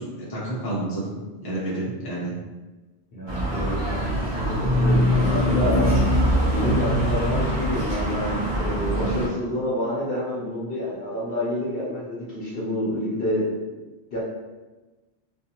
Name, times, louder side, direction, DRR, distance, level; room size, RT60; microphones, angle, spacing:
voice 1, 0.0-2.3, right 1 dB, 25° left, -7 dB, 0.6 m, -30 dB
voice 2, 3.1-5.9 6.5-13.5 14.1-14.2, equal, 55° left, -6 dB, 0.8 m, -28 dB
sound 1, 3.3-9.3, equal, 40° right, 0.4 m, -23 dB
2.5 x 2.5 x 2.8 m, 1.2 s
omnidirectional pair, 1.3 m